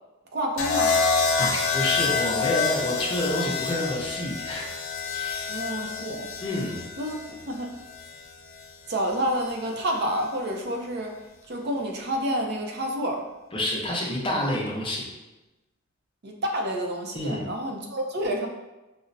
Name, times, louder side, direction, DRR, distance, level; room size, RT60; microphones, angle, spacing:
voice 1, 0.3-1.0 5.5-6.3 7.0-7.7 8.9-11.1 11.5-13.2 16.2-18.5, equal, 55° right, 2 dB, 0.5 m, -29 dB
sound 1, 0.6-8.7 9.9-10.3, left 5 dB, 70° left, 0.4 m, -28 dB
voice 2, 1.4-4.7 5.1-5.6 6.4-6.8 13.5-15.1 17.1-17.5, left 1 dB, 25° left, -2 dB, 0.6 m, -28 dB
5.1 x 2.0 x 2.6 m, 1.1 s
head